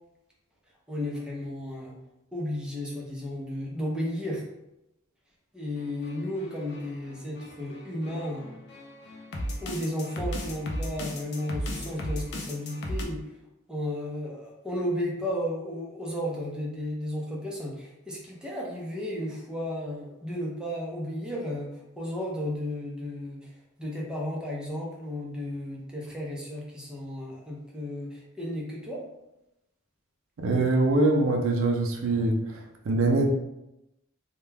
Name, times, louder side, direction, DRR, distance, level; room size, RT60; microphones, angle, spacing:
voice 1, 0.9-1.9 2.3-4.4 5.5-8.5 9.6-13.2 13.7-21.7 22.0-23.5 23.8-29.0, left 1 dB, 5° right, -3 dB, 0.6 m, -33 dB
sound 1, 5.8-13.0, left 1 dB, 55° left, 0.4 m, -36 dB
voice 2, 30.4-32.4 32.9-33.3, right 2 dB, 70° right, 2 dB, 0.4 m, -23 dB
2.2 x 2.2 x 3.2 m, 0.89 s
head